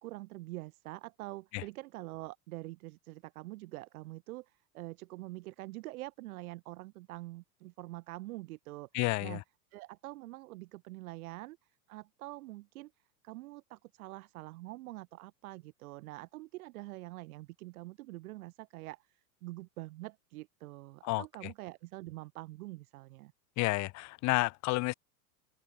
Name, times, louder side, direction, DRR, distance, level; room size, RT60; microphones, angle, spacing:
voice 1, 0.0-8.9 9.2-9.4 9.7-11.6 11.9-12.9 13.2-23.3, right 19 dB, 60° right, 2.1 m, -45 dB
voice 2, 8.9-9.4 21.0-21.2 23.6-24.9, left 22 dB, 35° left, 0.9 m, -30 dB
open air
hypercardioid pair, 105°, 48 cm